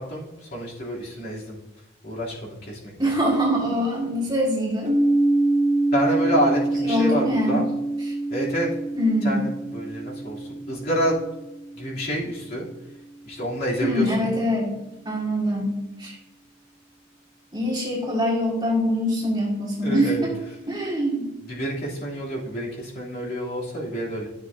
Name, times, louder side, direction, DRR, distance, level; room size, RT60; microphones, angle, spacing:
voice 1, 0.0-1.6 2.0-2.9 5.9-7.6 8.3-8.7 9.2-11.2 11.8-12.6 13.2-14.3 19.8-20.3 21.5-24.3, equal, 45° left, -6 dB, 2.9 m, -28 dB
voice 2, 3.0-4.9 6.8-7.7 8.0-8.1 9.0-9.4 13.8-14.7 15.1-16.2 17.5-20.3 20.7-21.3, equal, 20° right, -2 dB, 1.8 m, -23 dB
sound 1, 4.8-12.7, right 2 dB, 40° right, 2.1 m, -25 dB
12.5 x 7.3 x 2.6 m, 0.96 s
head